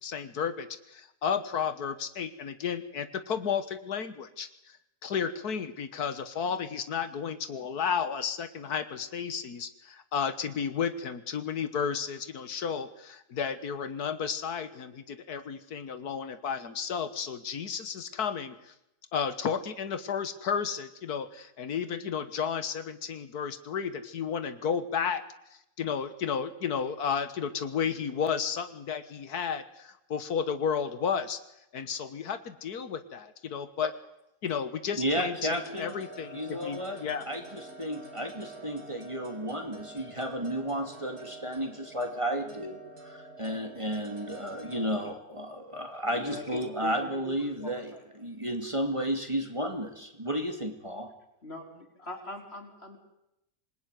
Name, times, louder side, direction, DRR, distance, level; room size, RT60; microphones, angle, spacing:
voice 1, 0.0-4.8 5.0-18.7 19.1-25.2 25.5-31.4 31.7-33.9 34.4-37.3, left 7 dB, 90° left, 11 dB, 1.9 m, -32 dB
voice 2, 35.0-36.0 36.3-51.1, equal, 20° right, 4 dB, 2.7 m, -33 dB
sound 1, 35.5-45.1, right 2 dB, 85° right, 4.0 m, -47 dB
voice 3, 46.1-48.0 51.4-53.0, left 1 dB, 40° left, 3 dB, 5.0 m, -42 dB
26.5 x 20.5 x 9.4 m, 0.85 s
omnidirectional pair, 1.6 m